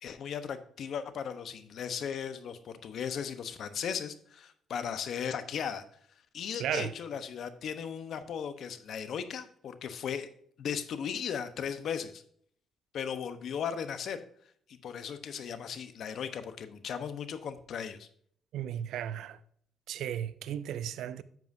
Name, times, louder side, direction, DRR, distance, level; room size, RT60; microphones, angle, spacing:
voice 1, 0.0-5.8 6.3-10.3 10.6-12.2 12.9-14.2 14.7-18.1, left 7 dB, 65° left, 0.9 m, -37 dB
voice 2, 6.6-6.9 18.5-19.4 19.9-21.2, right 10 dB, 80° right, 0.5 m, -35 dB
10.5 x 7.5 x 2.7 m
cardioid pair, 90°, 0 cm